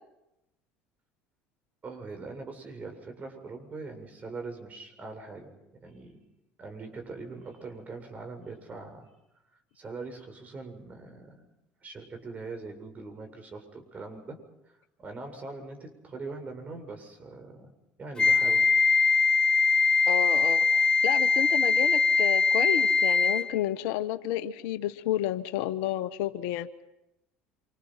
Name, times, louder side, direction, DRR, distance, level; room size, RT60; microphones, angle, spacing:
voice 1, 1.8-6.2 6.6-9.1 9.7-11.5 11.8-14.4 15.0-18.7, right 3 dB, 35° right, 5 dB, 7.6 m, -42 dB
Wind instrument woodwind instrument, 18.2-23.5, left 4 dB, 15° left, 0.9 m, -22 dB
voice 2, 20.1-26.7, left 12 dB, 75° left, 10 dB, 1.4 m, -31 dB
27.0 x 27.0 x 5.9 m, 0.89 s
hypercardioid pair, 75°, 5 cm